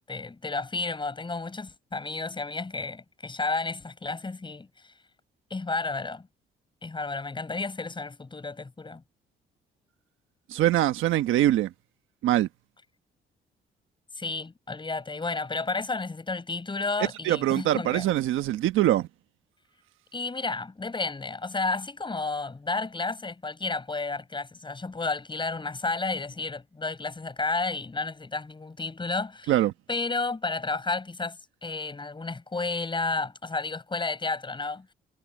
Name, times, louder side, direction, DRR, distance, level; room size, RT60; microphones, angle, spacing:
voice 1, 0.1-4.9 5.5-6.3 6.8-9.0 14.1-18.1 20.1-29.5 29.9-34.9, left 3 dB, 25° left, 6.5 m, -32 dB
voice 2, 10.5-11.7 12.2-12.5 17.2-19.1 29.5-29.7, right 13 dB, 85° right, 1.2 m, -23 dB
cardioid pair, 90°, 20 cm